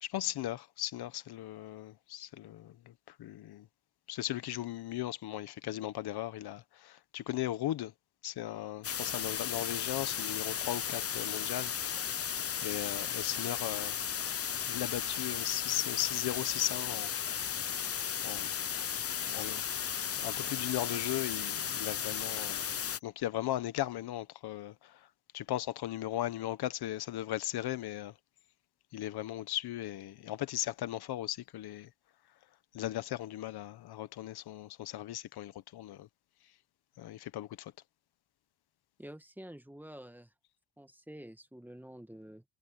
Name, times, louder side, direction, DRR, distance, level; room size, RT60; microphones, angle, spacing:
voice 1, 0.0-3.7 4.1-7.9 8.2-12.0 12.6-14.4 14.7-17.5 18.2-18.5 19.2-19.6 20.2-22.7 23.0-25.1 25.3-28.1 28.9-31.9 32.7-36.1 37.0-37.7, left 14 dB, 75° left, 1.4 m, -37 dB
sound 1, 8.8-23.0, left 8 dB, 35° left, 0.9 m, -35 dB
voice 2, 39.0-40.3 40.8-42.4, right 1 dB, 5° right, 1.6 m, -49 dB
cardioid pair, 85°, 39 cm